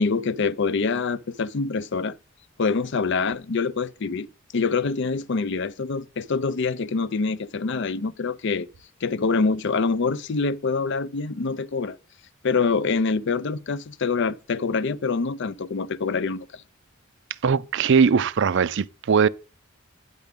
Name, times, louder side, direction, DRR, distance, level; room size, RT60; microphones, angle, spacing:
voice 1, 0.0-2.2 2.6-4.3 4.5-8.7 9.0-12.0 12.4-16.6, left 4 dB, 60° left, 0.5 m, -25 dB
voice 2, 17.4-19.3, right 6 dB, 60° right, 0.4 m, -20 dB
9.3 x 6.0 x 5.2 m
head